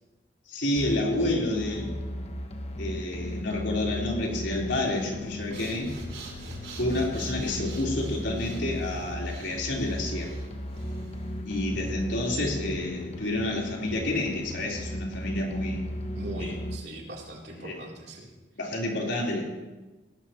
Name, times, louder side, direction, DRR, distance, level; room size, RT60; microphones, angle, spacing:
voice 1, 0.5-1.9 2.8-5.9 6.8-10.3 11.4-15.8 16.4-16.6 17.6-17.8 18.6-19.4, left 1 dB, 70° left, -3 dB, 4.1 m, -29 dB
sound 1, 0.8-16.8, left 1 dB, 35° left, 1.1 m, -36 dB
Breathing, 5.4-11.5, right 2 dB, 90° right, 4.8 m, -44 dB
voice 2, 11.6-12.0 16.1-18.3, right 1 dB, 55° right, -3 dB, 3.7 m, -41 dB
20.0 x 18.0 x 3.1 m, 1.2 s
head